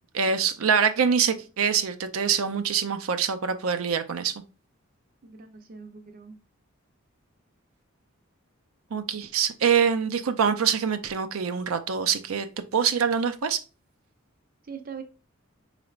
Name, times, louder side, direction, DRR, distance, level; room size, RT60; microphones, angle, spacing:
voice 1, 0.1-4.3 8.9-12.5 12.7-13.6, right 7 dB, 90° right, 0.5 m, -24 dB
voice 2, 5.2-6.4 14.6-15.0, right 6 dB, 45° right, 0.6 m, -42 dB
4.9 x 3.2 x 2.4 m
head